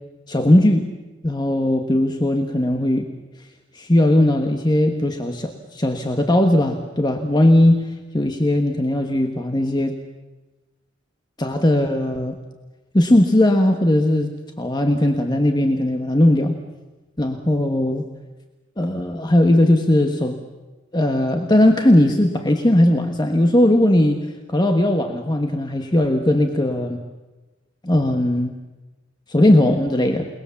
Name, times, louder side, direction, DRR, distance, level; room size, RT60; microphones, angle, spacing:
voice 1, 0.3-0.8 1.2-3.1 3.7-7.9 8.1-9.9 11.4-12.4 12.9-14.3 14.6-16.6 17.2-18.1 18.8-20.4 20.9-24.2 24.5-27.0 27.8-28.5 29.3-30.3, left 1 dB, 25° left, 5 dB, 1.3 m, -18 dB
29.0 x 19.5 x 7.1 m, 1.2 s
head